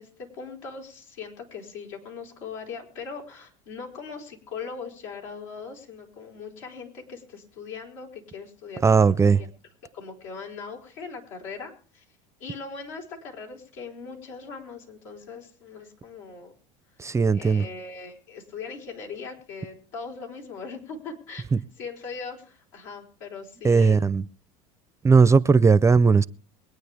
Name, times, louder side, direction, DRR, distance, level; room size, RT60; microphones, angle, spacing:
voice 1, 0.0-9.5 9.9-12.0 12.4-16.5 17.3-21.5 21.8-24.1, left 5 dB, 85° left, 4.6 m, -40 dB
voice 2, 8.8-9.4 17.0-17.7 21.5-21.6 23.6-24.3 25.0-26.3, right 5 dB, 15° right, 0.5 m, -18 dB
23.5 x 9.4 x 3.5 m
hypercardioid pair, 90°, 17 cm